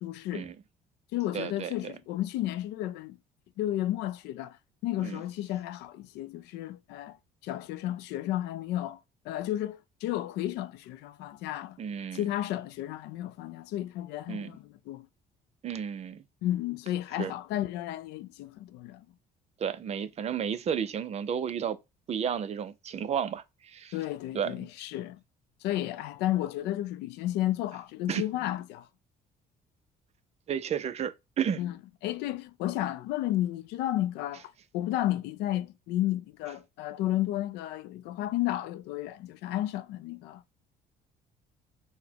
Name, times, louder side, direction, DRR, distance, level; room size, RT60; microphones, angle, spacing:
voice 1, 0.0-0.5 1.1-3.2 3.6-4.6 4.8-7.2 7.4-9.0 9.3-11.8 12.1-15.1 16.4-19.1 23.9-25.2 25.6-28.9 31.6-31.7 32.0-40.4, left 14 dB, 85° left, 0.4 m, -32 dB
voice 2, 1.3-1.9 5.0-5.2 11.8-12.2 14.3-14.5 15.6-16.2 17.2-17.3 19.6-21.8 22.1-23.9 24.3-24.5 28.1-28.2 30.5-31.6, right 8 dB, 40° right, 0.4 m, -32 dB
4.0 x 2.1 x 2.7 m
cardioid pair, 110°, 17 cm